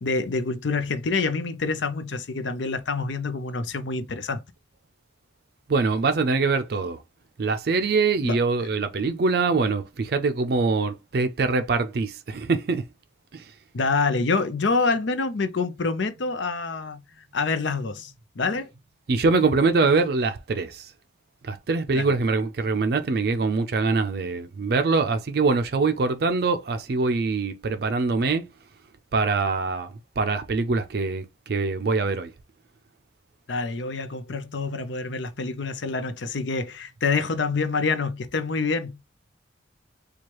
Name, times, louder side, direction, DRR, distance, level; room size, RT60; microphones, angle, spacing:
voice 1, 0.0-4.4 8.2-8.4 13.7-17.0 17.3-18.7 21.9-22.1 33.5-39.1, left 4 dB, 75° left, 0.6 m, -27 dB
voice 2, 5.7-7.0 7.4-12.8 13.3-13.5 19.1-20.9 21.4-28.5 29.1-29.9 30.2-32.3, right 4 dB, 55° right, 0.4 m, -23 dB
4.5 x 2.3 x 3.0 m
head